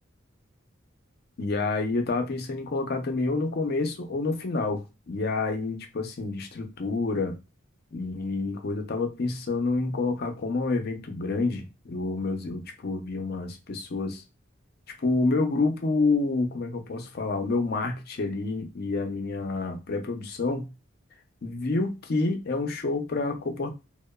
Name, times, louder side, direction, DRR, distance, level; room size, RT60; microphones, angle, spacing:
voice 1, 1.4-7.3 7.9-14.2 15.0-20.7 21.4-23.7, left 3 dB, 50° left, 0.5 m, -28 dB
2.9 x 2.1 x 2.2 m
head